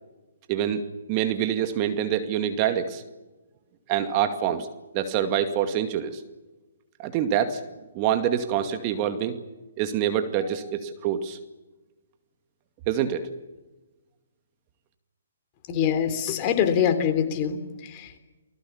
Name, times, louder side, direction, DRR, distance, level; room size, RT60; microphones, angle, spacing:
voice 1, 0.5-0.8 1.1-3.0 3.9-4.7 4.9-6.2 7.0-7.6 7.9-9.4 9.8-11.4 12.9-13.3, right 9 dB, 30° right, 8 dB, 2.3 m, -25 dB
voice 2, 15.7-18.2, left 8 dB, 35° left, 8 dB, 3.5 m, -24 dB
30.0 x 20.0 x 7.2 m, 1.1 s
hypercardioid pair, 135°, 0 cm